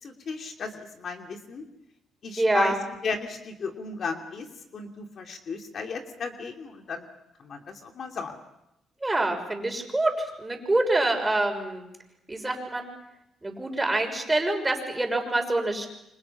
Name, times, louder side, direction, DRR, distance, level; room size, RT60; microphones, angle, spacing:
voice 1, 0.0-1.6 2.2-2.7 3.0-4.5 4.7-7.1 7.4-8.4, left 4 dB, 55° left, 3 dB, 2.7 m, -34 dB
voice 2, 2.4-2.8 9.0-11.8 12.3-12.9 13.4-15.9, right 2 dB, 15° right, 3 dB, 6.3 m, -26 dB
29.0 x 26.0 x 5.9 m, 0.85 s
cardioid pair, 90°, 0 cm